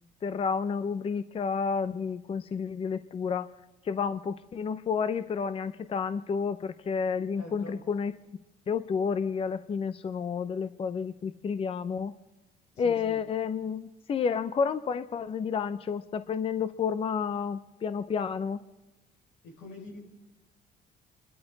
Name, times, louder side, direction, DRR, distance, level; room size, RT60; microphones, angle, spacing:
voice 1, 0.2-3.5 3.8-8.1 8.7-12.1 12.8-18.6, left 6 dB, 35° left, 12 dB, 0.6 m, -30 dB
voice 2, 7.4-7.8 12.8-13.2 19.4-20.0, left 2 dB, 85° left, -1 dB, 5.9 m, -44 dB
28.0 x 12.5 x 4.0 m, 1.0 s
cardioid pair, 110°, 17 cm